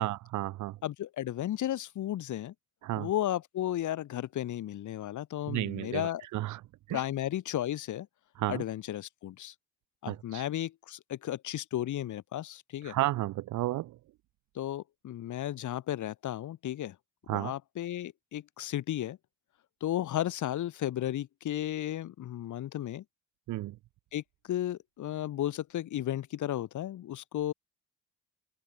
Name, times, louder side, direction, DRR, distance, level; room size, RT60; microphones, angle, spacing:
voice 1, 0.0-0.7 2.8-3.1 5.5-6.0 6.3-6.6 6.9-7.0 8.4-8.6 10.1-10.4 12.9-13.8 17.3-17.5 23.5-23.7, right 16 dB, 75° right, 0.7 m, -32 dB
voice 2, 0.8-2.5 3.0-6.3 6.9-8.1 8.5-9.5 10.0-13.0 14.6-17.0 17.3-19.2 19.8-23.0 24.1-27.5, left 12 dB, 75° left, 5.4 m, -34 dB
open air
cardioid pair, 90°, 30 cm